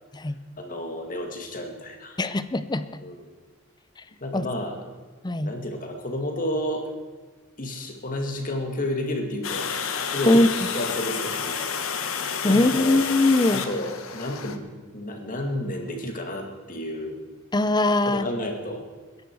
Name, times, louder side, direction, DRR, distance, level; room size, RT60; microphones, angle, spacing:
voice 1, 0.6-2.2 3.0-3.3 4.2-4.8 5.4-6.9 7.6-9.8 10.1-10.4 10.7-11.6 12.0-12.1 12.5-13.1 13.5-14.6 14.9-17.2 18.0-18.8, left 1 dB, 40° left, 3 dB, 2.2 m, -31 dB
voice 2, 2.2-2.9 4.3-4.5 5.2-5.5 10.3-10.5 12.4-13.7 17.5-18.3, left 2 dB, 20° left, 13 dB, 0.6 m, -21 dB
Water, 9.4-14.6, left 6 dB, 75° left, 1.2 m, -30 dB
21.5 x 10.5 x 4.7 m, 1.4 s
head